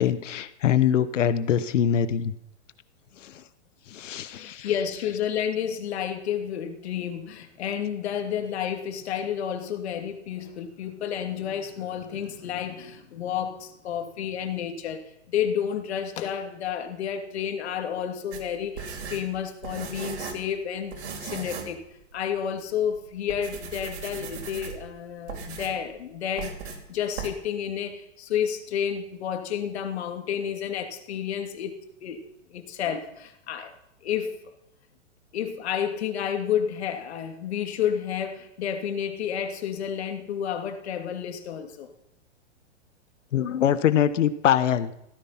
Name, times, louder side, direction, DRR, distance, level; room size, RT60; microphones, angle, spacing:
voice 1, 0.0-2.3 3.2-3.4 3.9-4.7 43.3-45.0, left 9 dB, 85° left, 13 dB, 1.3 m, -23 dB
voice 2, 4.4-21.8 22.1-31.7 32.0-32.2 32.5-33.7 34.0-34.4 35.3-41.9, left 8 dB, 60° left, 6 dB, 2.7 m, -30 dB
sound 1, 18.3-20.5 20.9-21.8 22.1-22.2 22.8-23.0 23.3-24.9 25.3-25.8 26.4-26.8 27.2-27.3, right 5 dB, 70° right, 4.8 m, -37 dB
16.5 x 14.5 x 5.9 m, 0.80 s
hypercardioid pair, 165°, 36 cm